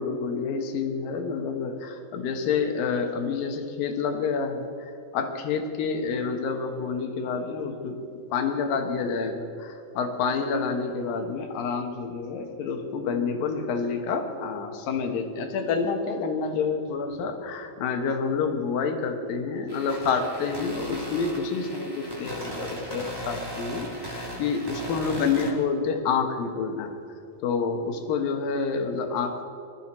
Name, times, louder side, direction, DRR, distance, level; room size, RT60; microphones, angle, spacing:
voice 1, 0.0-8.0 8.3-26.9 27.4-29.4, left 5 dB, 70° left, 5 dB, 3.0 m, -28 dB
sound 1, 19.7-25.5, equal, 10° right, 1.9 m, -37 dB
21.0 x 13.0 x 4.4 m, 2.7 s
omnidirectional pair, 4.3 m